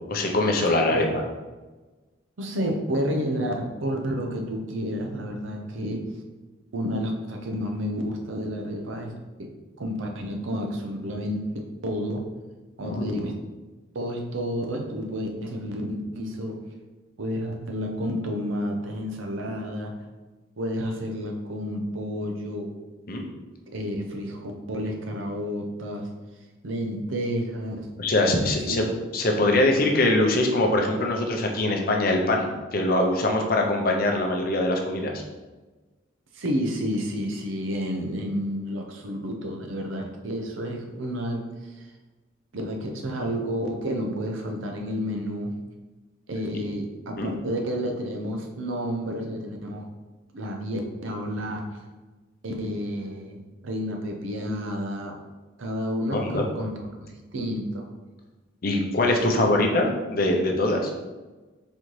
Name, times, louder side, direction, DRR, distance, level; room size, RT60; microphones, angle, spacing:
voice 1, 0.1-1.0 12.8-13.3 23.1-23.2 28.0-28.9 29.1-32.5 32.7-35.2 47.2-47.3 56.1-56.4 58.6-60.9, left 2 dB, 50° left, 2 dB, 0.6 m, -23 dB
voice 2, 2.4-6.0 6.7-9.5 9.8-12.2 12.8-13.4 13.9-16.6 17.2-19.9 20.6-22.7 23.7-26.1 26.6-27.9 28.7-28.8 36.3-41.5 41.8-41.9 42.5-45.6 46.3-49.9 50.3-51.7 52.4-53.4 53.6-55.2 55.6-56.7 57.1-57.9 59.2-59.5, equal, 85° right, 3 dB, 0.7 m, -30 dB
4.2 x 3.8 x 3.1 m, 1.2 s
head